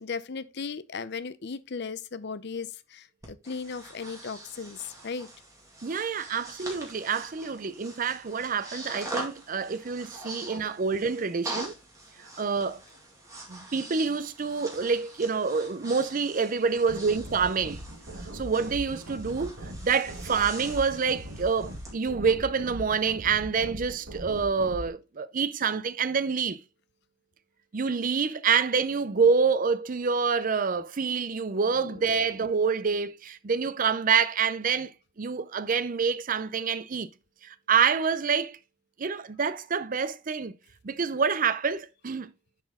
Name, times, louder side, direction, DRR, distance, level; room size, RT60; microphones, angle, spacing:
voice 1, 0.0-5.3, left 5 dB, 55° left, 0.6 m, -36 dB
Breathing, 3.2-21.9, right 2 dB, 15° right, 2.2 m, -43 dB
voice 2, 5.8-11.8 12.2-12.8 13.5-17.8 18.3-19.5 19.8-26.6 27.7-37.1 37.4-38.6 39.0-40.5 40.8-42.3, right 5 dB, 40° right, 0.5 m, -27 dB
sound 1, 16.9-24.9, right 1 dB, 70° right, 1.3 m, -40 dB
10.0 x 4.2 x 3.6 m
head